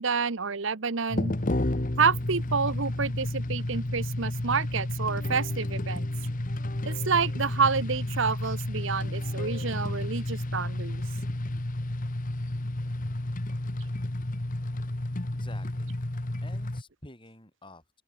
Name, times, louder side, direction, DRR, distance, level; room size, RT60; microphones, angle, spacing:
voice 1, 0.0-1.3 2.0-6.1 6.9-11.0, right 5 dB, 60° right, 0.9 m, -28 dB
sound 1, 1.1-16.8, left 1 dB, 40° left, 1.3 m, -31 dB
voice 2, 15.3-16.0 16.4-18.0, left 1 dB, 25° left, 7.3 m, -50 dB
open air
head